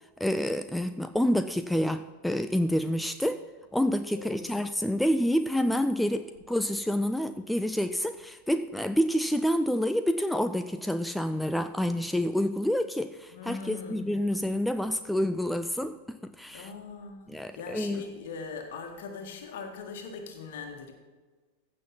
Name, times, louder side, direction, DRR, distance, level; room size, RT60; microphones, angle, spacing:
voice 1, 0.2-3.4 3.7-16.7 17.3-18.0, equal, ahead, 10 dB, 0.4 m, -28 dB
voice 2, 4.1-4.7 13.3-14.2 16.5-20.9, left 5 dB, 55° left, 4 dB, 1.8 m, -41 dB
15.0 x 6.0 x 5.8 m, 1.4 s
figure-of-eight pair, 90°, 0 cm